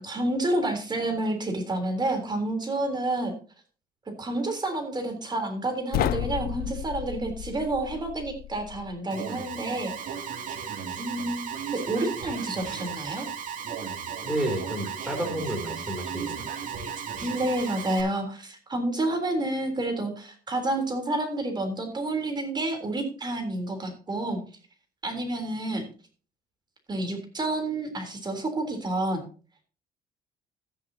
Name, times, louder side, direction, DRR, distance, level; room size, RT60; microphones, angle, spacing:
voice 1, 0.0-3.3 4.2-10.3 11.0-11.4 11.7-13.3 17.2-24.4 25.0-25.8 26.9-29.3, right 2 dB, 25° right, 5 dB, 3.6 m, -29 dB
sound 1, 5.9-9.0, left 15 dB, 60° left, 0.4 m, -32 dB
Alarm, 9.1-18.0, right 7 dB, 50° right, 2.7 m, -35 dB
voice 2, 14.2-16.7, right 1 dB, 5° right, 2 dB, 3.1 m, -31 dB
13.5 x 9.9 x 2.8 m, 0.37 s
cardioid pair, 110°, 17 cm